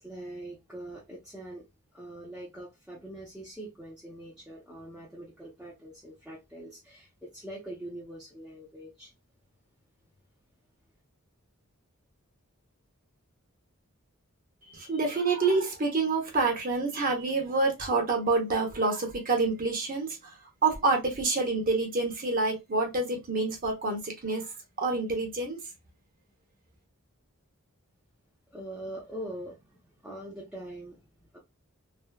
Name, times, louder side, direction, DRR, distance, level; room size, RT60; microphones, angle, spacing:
voice 1, 0.0-1.7 1.9-9.1 28.5-31.4, right 1 dB, 5° right, 0.7 m, -43 dB
voice 2, 14.7-20.3 20.6-24.5 24.8-25.6, right 3 dB, 45° right, 0.9 m, -27 dB
3.3 x 2.2 x 2.2 m
head